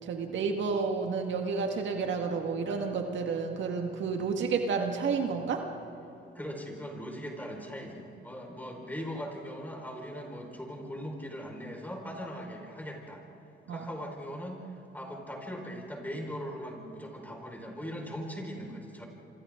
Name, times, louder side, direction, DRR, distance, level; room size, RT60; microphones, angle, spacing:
voice 1, 0.0-5.6 13.7-13.9, right 5 dB, 70° right, 3 dB, 1.9 m, -30 dB
voice 2, 6.3-13.2 13.7-19.0, equal, 10° left, 1 dB, 5.3 m, -40 dB
27.0 x 26.5 x 3.9 m, 3.0 s
cardioid pair, 90°, 20 cm